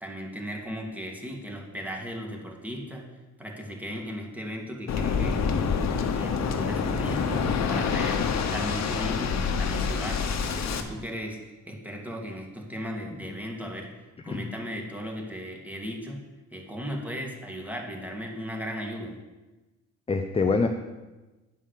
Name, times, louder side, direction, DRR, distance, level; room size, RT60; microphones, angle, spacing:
voice 1, 0.0-3.1 3.4-5.4 6.1-8.2 8.5-10.2 10.6-11.4 11.7-13.9 14.2-16.2 16.5-19.2, equal, 5° right, 0 dB, 2.0 m, -36 dB
Waves surf, 4.9-10.8, left 5 dB, 60° left, 1.1 m, -27 dB
voice 2, 20.1-20.7, left 4 dB, 20° left, 6 dB, 0.6 m, -25 dB
9.9 x 5.5 x 6.6 m, 1.2 s
cardioid pair, 90°, 30 cm